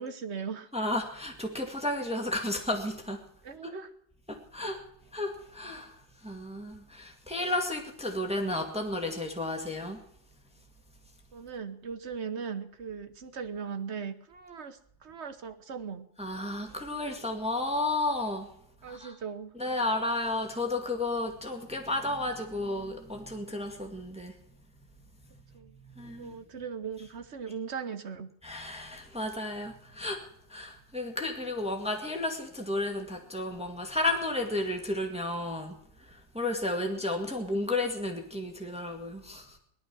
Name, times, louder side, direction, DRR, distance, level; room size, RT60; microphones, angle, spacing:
voice 1, 0.0-0.7 3.4-3.9 4.6-4.7 11.3-16.1 18.8-19.5 25.5-25.8 26.2-28.3, right 6 dB, 45° right, 8 dB, 1.3 m, -38 dB
voice 2, 0.7-3.2 3.6-3.7 4.3-4.8 5.1-10.0 16.2-18.5 18.8-19.2 19.5-24.4 25.0-25.1 25.9-26.4 28.4-39.6, left 2 dB, 5° right, 3 dB, 1.9 m, -33 dB
18.5 x 12.5 x 6.2 m, 0.70 s
omnidirectional pair, 1.9 m